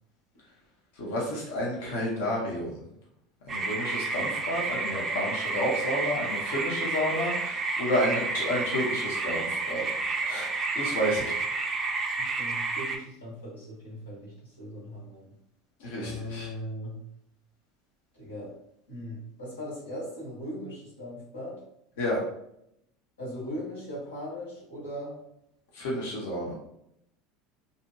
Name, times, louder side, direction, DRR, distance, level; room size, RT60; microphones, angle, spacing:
voice 1, 1.0-2.8 3.5-9.9 10.2-10.5 10.8-11.3 15.8-16.5 22.0-22.2 25.7-26.5, equal, 65° left, -3 dB, 0.8 m, -30 dB
sound 1, 3.5-13.0, right 3 dB, 30° right, 0.4 m, -30 dB
voice 2, 12.2-15.4 15.9-17.1 18.1-18.6 18.9-21.7 23.2-25.2, equal, 85° left, -6 dB, 1.1 m, -39 dB
2.7 x 2.6 x 2.2 m, 0.76 s
figure-of-eight pair, 75°, 0 cm